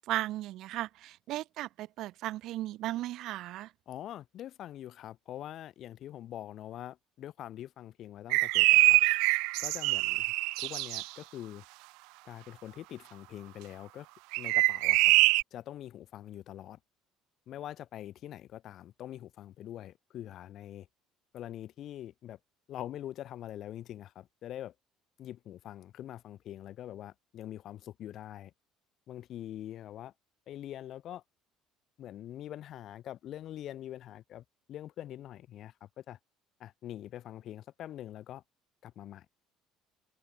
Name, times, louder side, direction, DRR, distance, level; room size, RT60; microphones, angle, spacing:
voice 1, 0.1-3.7, right 15 dB, 65° right, 2.3 m, -36 dB
voice 2, 3.9-9.0 9.6-10.2 10.6-11.6 12.3-14.1 14.4-15.1 15.5-16.8 17.5-20.9 21.3-22.4 22.7-24.7 25.2-28.5 29.1-30.1 30.5-31.2 32.0-36.2 36.6-38.4 38.8-39.3, left 12 dB, 55° left, 3.9 m, -44 dB
sound 1, 8.3-11.0 14.3-15.4, right 26 dB, 85° right, 0.3 m, -24 dB
cardioid pair, 110°, 0 cm